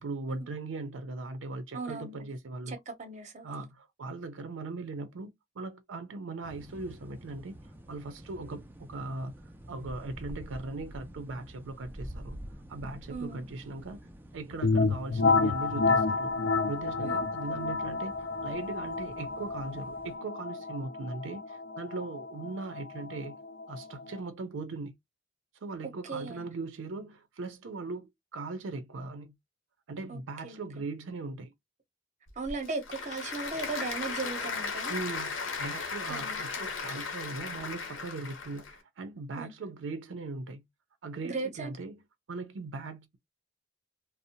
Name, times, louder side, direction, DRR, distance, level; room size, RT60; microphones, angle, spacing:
voice 1, 0.0-2.8 3.4-7.6 7.9-9.3 9.7-12.4 12.7-14.1 14.3-16.3 16.7-18.2 18.4-23.4 23.7-24.9 25.6-29.3 29.9-31.5 34.9-40.6 41.0-42.0 42.3-43.2, right 3 dB, 75° right, 0.5 m, -39 dB
voice 2, 1.7-2.3 2.7-3.6 13.1-13.4 17.0-17.3 26.1-26.5 30.1-30.6 32.4-35.0 36.1-36.6 39.4-39.5 41.2-41.7, right 3 dB, 40° right, 0.7 m, -37 dB
sound 1, 6.4-20.2, equal, 10° right, 0.3 m, -48 dB
sound 2, 14.6-24.2, left 4 dB, 65° left, 0.4 m, -30 dB
Applause / Crowd, 32.3-38.7, left 5 dB, 80° left, 0.9 m, -36 dB
2.6 x 2.0 x 2.7 m
head